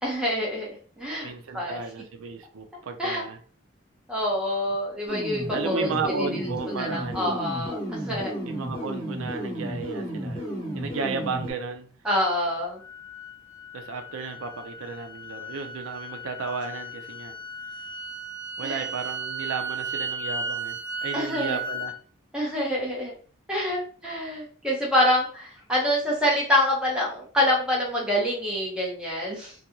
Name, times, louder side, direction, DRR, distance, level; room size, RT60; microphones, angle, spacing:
voice 1, 0.0-1.8 2.7-3.2 4.1-6.3 6.8-8.3 12.0-12.8 18.6-18.9 21.1-21.6 22.3-23.1 23.5-29.5, left 1 dB, 5° right, 0.8 m, -26 dB
voice 2, 1.2-3.4 5.5-7.4 8.4-10.4 10.7-11.9 13.7-17.4 18.6-21.9, right 4 dB, 85° right, 0.5 m, -34 dB
sound 1, 5.1-11.5, equal, 25° left, 1.1 m, -33 dB
sound 2, 12.8-21.9, right 3 dB, 55° left, 0.6 m, -35 dB
2.5 x 2.3 x 2.8 m
head